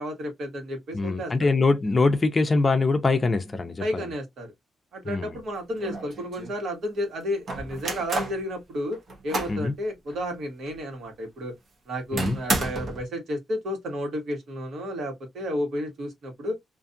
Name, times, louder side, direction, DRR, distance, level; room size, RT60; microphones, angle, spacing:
voice 1, 0.0-1.5 3.8-4.5 4.9-9.0 9.2-11.5 11.9-16.6, equal, 70° right, 1.4 m, -32 dB
voice 2, 0.9-4.0 5.0-5.4 9.5-9.7 12.1-12.4, left 3 dB, 25° left, 0.5 m, -23 dB
sound 1, 5.4-5.5 5.8-6.5 7.5-8.4 8.9-9.6 10.1-10.2 10.7-10.8 12.2-13.0, right 2 dB, 45° right, 0.8 m, -30 dB
2.5 x 2.3 x 2.6 m
cardioid pair, 140°, 0 cm